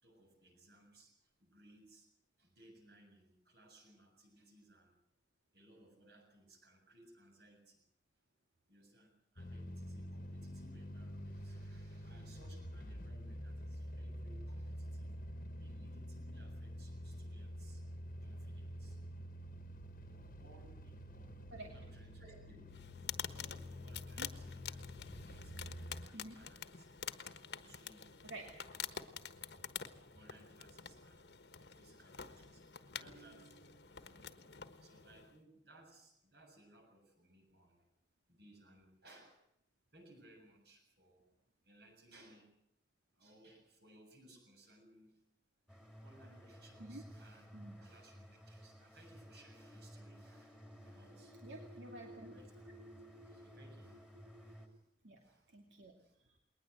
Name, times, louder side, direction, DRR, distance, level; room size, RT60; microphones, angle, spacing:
voice 1, 0.0-2.1 2.4-5.0 5.5-7.8 8.7-15.1 15.5-17.8 18.2-19.0 20.0-21.4 21.7-22.8 23.3-26.9 27.5-28.1 28.6-29.0 30.1-31.3 31.7-34.4 34.8-37.9 38.3-39.4 39.9-41.2 41.6-42.5 43.1-45.2 46.0-47.5 47.8-51.8 52.0-54.1 54.4-54.8 55.2-55.5 56.0-56.1, right 1 dB, 60° right, 3 dB, 7.3 m, -63 dB
sound 1, 9.4-26.1, equal, 45° left, 1.4 m, -47 dB
sound 2, 22.7-35.4, left 8 dB, 65° left, 1.3 m, -48 dB
voice 2, 28.2-28.6 46.8-47.0 47.5-47.8 51.4-52.3 55.0-55.2 55.5-55.9 56.2-56.4, right 2 dB, 85° right, 2 dB, 2.6 m, -50 dB
sound 3, 45.7-54.7, equal, 5° right, 2.5 m, -55 dB
21.0 x 19.5 x 8.0 m, 0.75 s
head